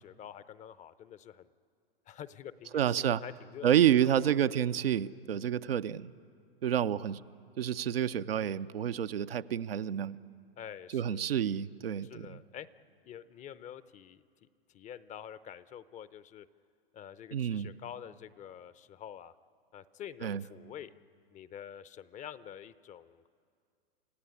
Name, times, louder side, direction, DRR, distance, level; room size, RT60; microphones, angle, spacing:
voice 1, 0.0-1.5 2.1-4.4 10.6-11.3 12.0-12.7 13.0-14.2 14.7-16.5 16.9-19.3 19.7-20.9 21.3-23.3, left 9 dB, 25° left, 16 dB, 0.7 m, -47 dB
voice 2, 2.7-3.2 3.6-6.1 6.6-7.2 7.6-10.2 10.9-12.4 17.3-17.7 20.2-20.4, right 10 dB, 75° right, 10 dB, 0.7 m, -29 dB
28.0 x 16.0 x 9.8 m, 2.3 s
hypercardioid pair, 105°, 30 cm